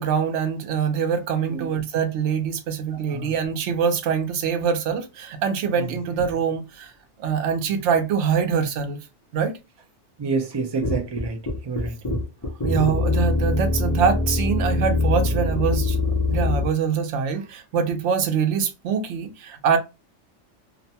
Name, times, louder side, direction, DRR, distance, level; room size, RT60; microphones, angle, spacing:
voice 1, 0.0-6.9 7.2-9.0 9.3-9.6 12.6-16.0 16.3-19.8, right 7 dB, 75° right, 0.9 m, -24 dB
voice 2, 10.2-11.4 11.6-11.9, right 4 dB, 40° right, 0.4 m, -28 dB
sound 1, 10.8-16.7, left 2 dB, 25° left, 0.4 m, -23 dB
2.5 x 2.1 x 2.7 m
omnidirectional pair, 1.2 m